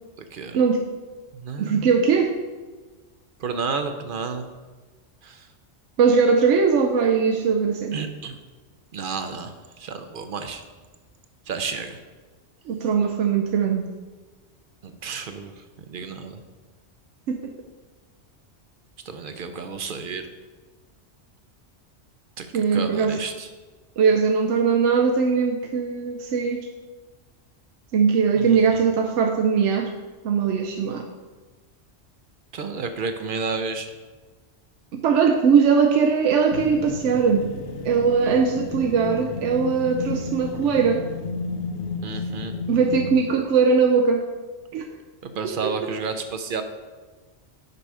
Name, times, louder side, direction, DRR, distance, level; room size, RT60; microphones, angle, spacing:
voice 1, 0.2-0.6 1.3-1.9 3.4-4.5 5.2-5.5 7.9-8.4 8.9-10.6 11.5-12.0 14.8-16.4 19.0-20.3 22.4-23.5 28.4-28.8 32.5-33.9 42.0-42.6 45.2-46.6, right 5 dB, 55° right, 8 dB, 0.7 m, -31 dB
voice 2, 1.6-2.3 6.0-8.0 12.7-13.9 17.3-17.5 22.5-23.2 24.0-26.7 27.9-29.9 30.2-31.1 34.9-37.5 37.8-41.0 42.7-44.3 44.7-44.9 45.6-45.7, right 5 dB, 85° right, 3 dB, 0.9 m, -20 dB
sound 1, 36.5-43.3, left 4 dB, 75° left, 0.9 m, -33 dB
6.7 x 5.4 x 4.8 m, 1.3 s
omnidirectional pair, 1.2 m